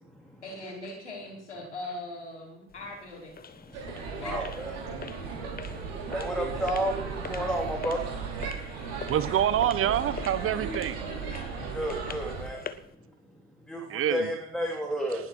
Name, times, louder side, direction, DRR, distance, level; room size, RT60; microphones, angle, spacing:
voice 1, 0.4-3.3 4.2-4.3 7.6-7.7, left 2 dB, 85° left, -1 dB, 4.9 m, -40 dB
sound 1, 2.7-12.9, left 6 dB, 25° left, 1.4 m, -44 dB
sound 2, 3.7-12.4, right 5 dB, 65° right, 5.2 m, -36 dB
voice 2, 4.2-4.7 6.1-6.9 7.3-8.0 11.7-12.6 13.7-13.8 14.1-15.2, equal, ahead, 0 dB, 3.8 m, -30 dB
voice 3, 9.1-11.0 13.9-14.3, right 11 dB, 40° right, 15 dB, 1.3 m, -26 dB
19.5 x 11.5 x 4.9 m, 0.82 s
figure-of-eight pair, 60°, 34 cm